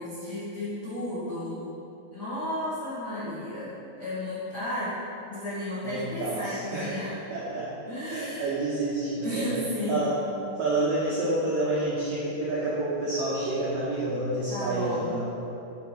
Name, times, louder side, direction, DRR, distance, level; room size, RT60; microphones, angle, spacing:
voice 1, 0.0-1.7 2.1-4.9 5.3-7.1 7.9-8.4 9.2-10.1 14.5-15.0, left 1 dB, 70° left, -12 dB, 0.9 m, -33 dB
voice 2, 5.8-7.7 8.1-9.6 9.9-10.2 10.6-15.2, right 2 dB, 75° right, -7 dB, 2.0 m, -29 dB
8.8 x 5.4 x 5.9 m, 2.8 s
omnidirectional pair, 5.4 m